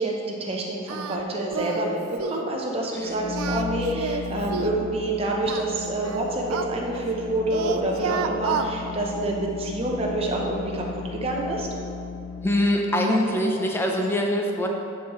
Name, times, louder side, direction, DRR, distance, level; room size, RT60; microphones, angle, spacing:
voice 1, 0.0-10.8 11.1-11.7, right 2 dB, 25° right, -1 dB, 0.8 m, -27 dB
Singing, 0.9-1.2 1.5-1.9 2.2-2.5 3.2-4.8 5.5-7.2 7.5-8.7, right 6 dB, 80° right, 0.4 m, -30 dB
sound 1, 2.9-12.8, left 5 dB, 60° left, 1.4 m, -36 dB
voice 2, 12.4-14.7, left 1 dB, 10° left, 1 dB, 0.5 m, -23 dB
11.0 x 4.8 x 3.1 m, 2.6 s
head